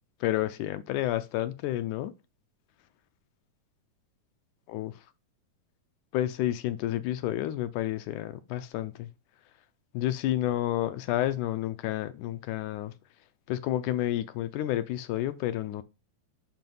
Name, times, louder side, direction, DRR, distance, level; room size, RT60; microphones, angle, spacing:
voice 1, 0.2-2.1 4.7-4.9 6.1-9.1 9.9-12.9 13.5-15.8, left 13 dB, 80° left, 1.9 m, -30 dB
6.0 x 5.6 x 5.3 m
omnidirectional pair, 3.7 m